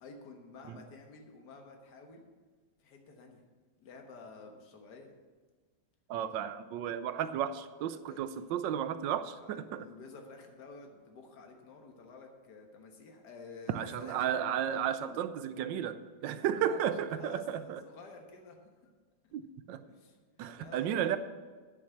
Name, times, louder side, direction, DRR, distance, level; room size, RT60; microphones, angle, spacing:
voice 1, 0.0-2.3 2.8-3.4 3.8-5.1 8.1-8.2 9.4-14.3 16.2-18.6 18.8-18.9 19.8-20.2 20.6-21.2, left 3 dB, 60° left, 3 dB, 1.9 m, -51 dB
voice 2, 6.1-9.9 13.7-17.8 19.3-19.8 20.4-21.2, right 9 dB, 80° right, 12 dB, 1.3 m, -33 dB
9.7 x 6.3 x 8.3 m, 1.4 s
omnidirectional pair, 2.1 m